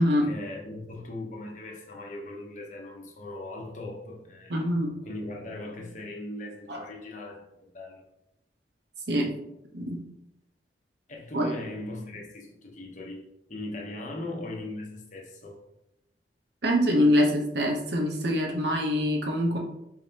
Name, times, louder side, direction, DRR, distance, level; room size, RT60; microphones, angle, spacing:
voice 1, 0.0-4.6 5.0-8.0 11.1-13.2 13.5-15.6, left 2 dB, 45° left, 0 dB, 0.9 m, -39 dB
voice 2, 4.5-4.9 6.7-6.8 9.1-9.3 9.7-10.0 11.3-11.5 16.6-19.6, equal, 70° right, 0 dB, 0.9 m, -24 dB
4.5 x 3.6 x 2.9 m, 0.85 s
head